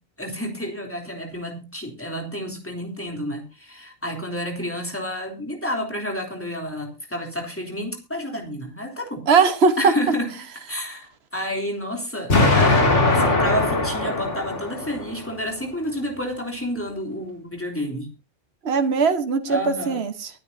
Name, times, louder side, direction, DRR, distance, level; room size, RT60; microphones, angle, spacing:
voice 1, 0.2-9.3 9.8-10.3 10.7-18.1 19.5-20.0, equal, 10° left, 2 dB, 3.4 m, -30 dB
voice 2, 9.3-9.9 18.6-20.3, right 5 dB, 60° right, 8 dB, 1.5 m, -19 dB
Explosion, 12.3-15.3, left 2 dB, 75° left, 3.2 m, -20 dB
23.5 x 9.1 x 2.8 m, 0.29 s
omnidirectional pair, 1.2 m